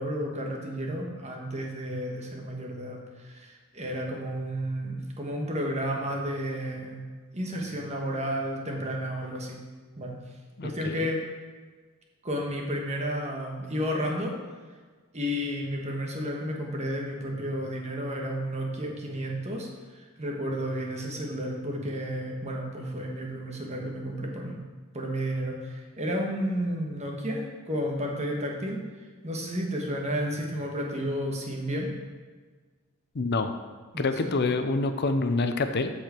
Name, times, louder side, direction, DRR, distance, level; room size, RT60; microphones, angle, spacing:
voice 1, 0.0-7.0 7.3-9.6 9.9-10.2 10.6-11.2 12.2-14.3 15.1-24.6 24.9-28.8 29.2-31.9 33.9-34.3, equal, 30° right, 0 dB, 1.4 m, -32 dB
voice 2, 10.6-11.1 33.1-33.5 34.0-35.9, left 3 dB, 50° left, 8 dB, 0.5 m, -27 dB
13.5 x 4.9 x 4.5 m, 1.4 s
head